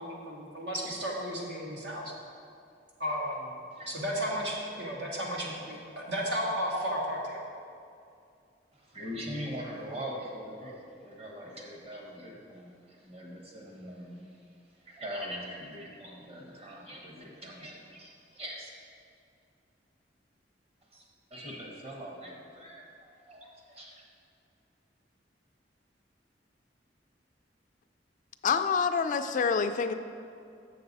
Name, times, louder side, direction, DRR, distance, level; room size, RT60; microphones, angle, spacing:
voice 1, 0.0-2.1 3.0-3.6 3.9-7.4, equal, 80° right, -4 dB, 1.6 m, -33 dB
voice 2, 8.7-14.4 14.7-18.7 20.9-21.0 21.3-24.0, equal, 35° right, -2 dB, 1.2 m, -42 dB
voice 3, 28.4-29.9, left 5 dB, 45° left, 9 dB, 0.3 m, -27 dB
7.4 x 6.7 x 4.0 m, 2.4 s
head